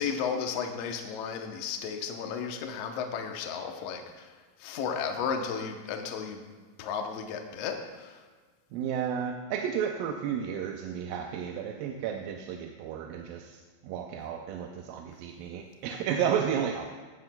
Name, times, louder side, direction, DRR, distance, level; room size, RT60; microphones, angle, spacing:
voice 1, 0.0-4.3 4.6-8.2, left 6 dB, 75° left, 4 dB, 1.5 m, -34 dB
voice 2, 8.7-16.9, right 8 dB, 85° right, 2 dB, 2.3 m, -32 dB
16.0 x 9.6 x 2.2 m, 1.4 s
omnidirectional pair, 3.9 m